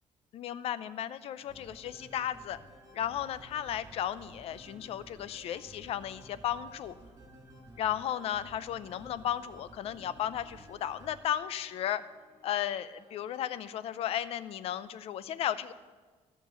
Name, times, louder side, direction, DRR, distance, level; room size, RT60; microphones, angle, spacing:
voice 1, 0.3-2.6 2.9-7.0 7.8-12.0 12.4-15.7, left 10 dB, 65° left, 15 dB, 0.5 m, -34 dB
sound 1, 1.4-14.4, right 1 dB, 30° right, 5.0 m, -55 dB
14.0 x 6.0 x 8.2 m, 1.3 s
cardioid pair, 140°, 11 cm